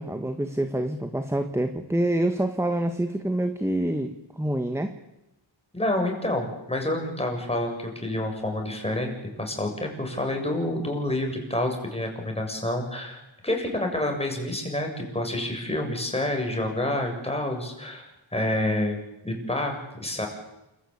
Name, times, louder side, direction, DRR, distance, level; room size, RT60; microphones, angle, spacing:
voice 1, 0.0-4.9, right 1 dB, 5° right, 8 dB, 1.7 m, -27 dB
voice 2, 5.7-9.1 9.4-20.3, left 1 dB, 15° left, 2 dB, 7.1 m, -28 dB
28.5 x 15.0 x 8.7 m, 0.94 s
cardioid pair, 70°, 45 cm